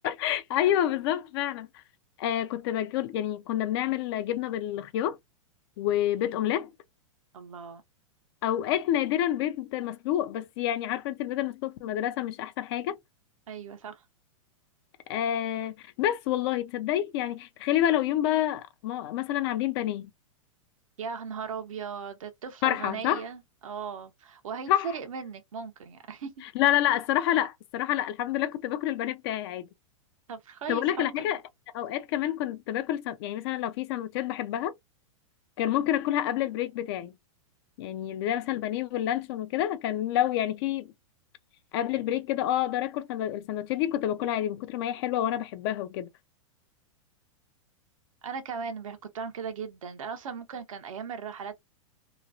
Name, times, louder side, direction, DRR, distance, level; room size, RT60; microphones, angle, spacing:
voice 1, 0.0-1.7 2.2-5.2 5.8-6.7 8.4-13.0 15.1-20.1 22.6-23.2 24.7-24.9 26.6-29.7 30.7-31.4 31.7-34.7 35.6-37.1 37.8-40.9 41.7-46.1, left 12 dB, 50° left, 0.4 m, -28 dB
voice 2, 7.3-7.8 13.5-14.0 21.0-26.4 30.3-31.4 48.2-51.6, right 6 dB, 80° right, 0.9 m, -38 dB
3.0 x 2.3 x 2.5 m
hypercardioid pair, 130°, 17 cm